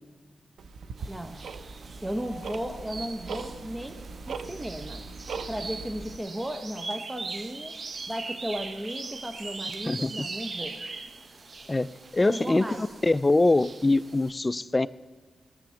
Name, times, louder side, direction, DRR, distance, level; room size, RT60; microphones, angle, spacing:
Tick-tock, 0.6-6.2, right 4 dB, 90° right, 0.6 m, -40 dB
sound 1, 1.0-14.3, right 3 dB, 50° right, 0.8 m, -41 dB
voice 1, 1.1-1.4 1.7-4.0 4.3-5.0 5.5-7.8 8.1-10.8 12.2-12.9, equal, 15° right, 6 dB, 0.8 m, -35 dB
voice 2, 9.8-10.3 11.7-14.9, left 2 dB, 20° left, 15 dB, 0.4 m, -24 dB
19.5 x 6.8 x 7.1 m, 1.5 s
wide cardioid pair, 105°, 0 cm